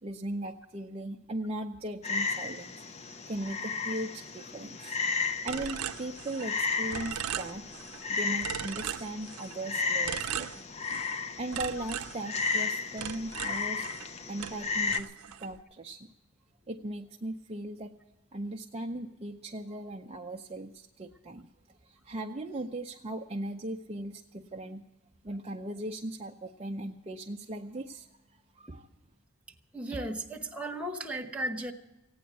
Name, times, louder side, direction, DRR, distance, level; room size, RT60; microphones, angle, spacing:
voice 1, 0.0-5.0 5.4-7.7 8.1-10.7 11.4-13.9 14.3-16.0 16.7-17.9 18.3-21.5 21.8-24.9 25.2-28.9, right 1 dB, 30° right, 2 dB, 0.5 m, -38 dB
Frog, 2.0-15.0, left 4 dB, 30° left, 0.5 m, -34 dB
sound 1, 5.5-6.6 6.9-8.0 8.4-9.6 10.0-11.2 11.5-14.1 14.4-15.6, right 9 dB, 85° right, 0.5 m, -38 dB
voice 2, 29.7-31.7, right 1 dB, 5° right, 2 dB, 1.0 m, -35 dB
16.0 x 9.4 x 7.9 m, 1.0 s
head